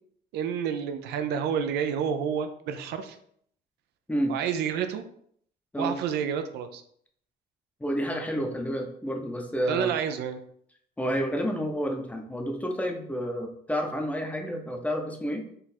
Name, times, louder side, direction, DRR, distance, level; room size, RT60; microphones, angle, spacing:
voice 1, 0.3-3.2 4.3-5.0 5.8-6.8 9.7-10.4, right 7 dB, 75° right, 9 dB, 0.5 m, -29 dB
voice 2, 7.8-9.9 11.0-15.4, equal, 10° left, 3 dB, 0.6 m, -30 dB
3.9 x 2.4 x 4.2 m, 0.65 s
cardioid pair, 110°, 17 cm